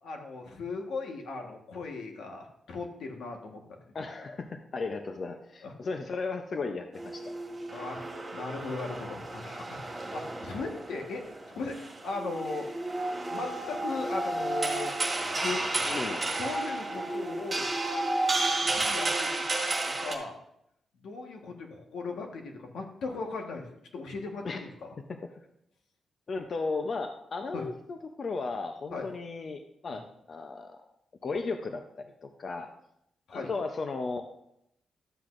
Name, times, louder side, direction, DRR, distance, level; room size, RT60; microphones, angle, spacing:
voice 1, 0.0-3.6 5.6-5.7 7.7-8.0 8.3-12.7 13.3-14.9 15.4-15.6 16.0-17.8 18.6-19.4 20.0-20.4 21.0-23.7 23.9-24.9 27.5-27.6 28.9-29.1 29.9-30.0 33.3-33.5, left 3 dB, 85° left, 2 dB, 1.4 m, -37 dB
voice 2, 3.9-7.3 15.7-16.2 24.4-24.6 26.3-30.8 31.2-32.7 33.3-34.3, left 4 dB, 45° left, 6 dB, 0.6 m, -35 dB
sound 1, 6.9-20.1, right 2 dB, 20° right, 1.7 m, -32 dB
12.0 x 7.9 x 2.6 m, 0.76 s
cardioid pair, 120°, 0 cm